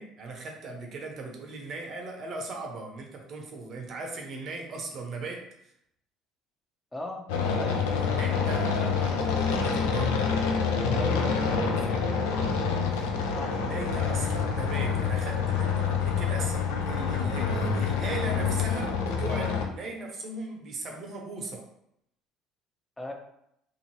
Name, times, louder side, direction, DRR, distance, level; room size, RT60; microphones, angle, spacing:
voice 1, 0.0-5.5 8.0-10.3 11.9-12.0 12.9-13.2 13.5-21.7, right 3 dB, 50° right, 1 dB, 0.8 m, -38 dB
voice 2, 6.9-7.3 7.6-7.9 10.8-12.5 13.3-13.6 23.0-23.1, left 1 dB, 15° left, 2 dB, 0.6 m, -38 dB
sound 1, 7.3-19.7, left 5 dB, 85° left, 0.4 m, -27 dB
2.7 x 2.5 x 3.0 m, 0.77 s
supercardioid pair, 80°, 0 cm